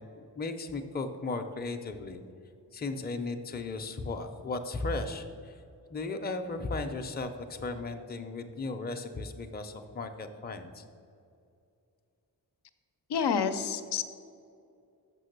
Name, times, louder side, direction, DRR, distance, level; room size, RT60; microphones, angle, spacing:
voice 1, 0.1-2.2 2.7-5.6 5.9-10.8, left 3 dB, 25° left, 5 dB, 0.5 m, -36 dB
voice 2, 13.1-14.0, left 6 dB, 90° left, 9 dB, 0.6 m, -28 dB
6.8 x 6.5 x 6.5 m, 2.5 s
wide cardioid pair, 175°, 39 cm